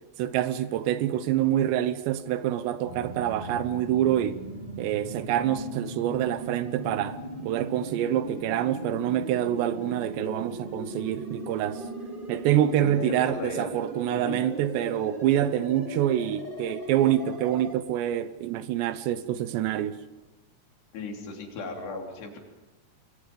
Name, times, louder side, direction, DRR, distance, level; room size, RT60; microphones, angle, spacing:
voice 1, 0.2-4.4 4.8-11.8 12.3-20.0, right 11 dB, 85° right, 3.2 m, -26 dB
sound 1, 2.8-17.7, right 1 dB, 20° right, 1.6 m, -38 dB
voice 2, 12.8-13.7 14.1-14.4 20.9-22.4, left 3 dB, 75° left, 5.3 m, -36 dB
28.0 x 22.0 x 5.3 m
omnidirectional pair, 4.9 m